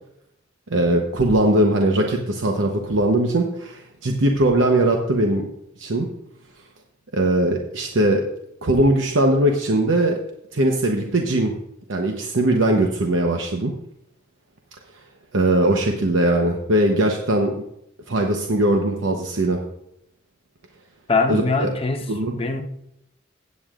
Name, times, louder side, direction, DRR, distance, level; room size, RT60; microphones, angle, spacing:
voice 1, 0.7-5.5 5.8-6.1 7.1-8.2 8.6-10.2 10.5-11.5 11.9-13.7 15.3-17.5 18.1-19.6 21.3-21.7 22.1-22.3, right 1 dB, 75° right, 0.9 m, -20 dB
voice 2, 21.1-22.1 22.3-22.6, left 3 dB, 30° left, 0.9 m, -22 dB
16.5 x 8.6 x 2.5 m
head